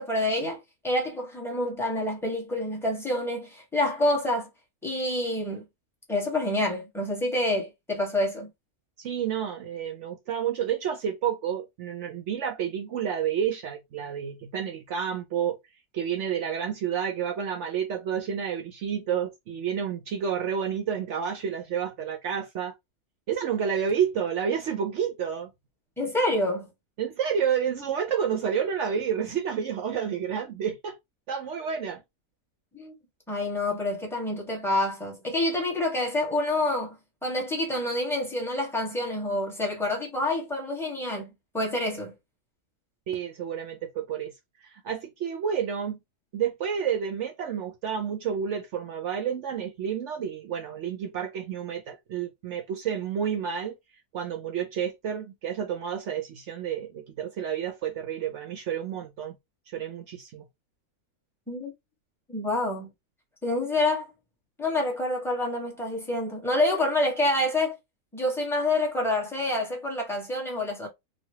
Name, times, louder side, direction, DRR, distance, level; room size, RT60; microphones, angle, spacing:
voice 1, 0.0-4.5 4.8-5.6 6.1-8.5 26.0-26.7 32.7-32.9 33.3-36.9 37.2-41.3 41.5-42.1 61.5-61.7 62.3-62.9 63.4-64.1 64.6-67.8 68.1-70.9, left 1 dB, ahead, 0.9 m, -27 dB
voice 2, 9.0-15.6 15.9-22.7 23.3-25.5 27.0-31.0 31.3-32.0 43.1-44.3 44.6-46.0 46.3-53.7 54.1-59.4 59.7-60.4, right 8 dB, 65° right, 0.8 m, -30 dB
3.2 x 2.3 x 2.8 m
omnidirectional pair, 1.6 m